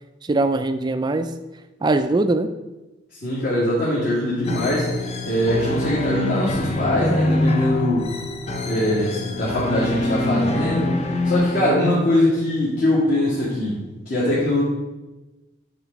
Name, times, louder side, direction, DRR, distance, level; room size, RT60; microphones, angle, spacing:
voice 1, 0.2-1.3 1.8-2.5, right 2 dB, 20° right, 10 dB, 0.3 m, -21 dB
voice 2, 3.2-8.1 8.6-10.9 11.2-13.8 14.1-14.6, left 1 dB, 50° left, -8 dB, 2.3 m, -22 dB
sound 1, 4.5-12.1, left 1 dB, 35° left, 0.7 m, -24 dB
8.4 x 5.0 x 4.6 m, 1.1 s
head